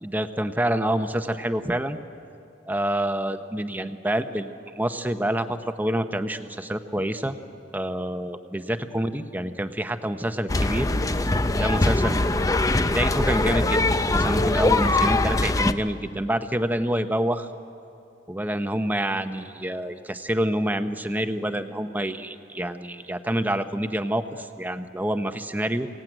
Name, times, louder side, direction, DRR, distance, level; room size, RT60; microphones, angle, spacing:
voice 1, 0.0-2.0 2.7-7.4 7.7-10.9 11.5-12.3 12.8-17.5 18.3-25.9, right 1 dB, 10° right, 8 dB, 0.8 m, -27 dB
sound 1, 10.5-15.7, left 2 dB, 20° left, 0.5 m, -22 dB
25.0 x 17.0 x 9.1 m, 2.7 s
head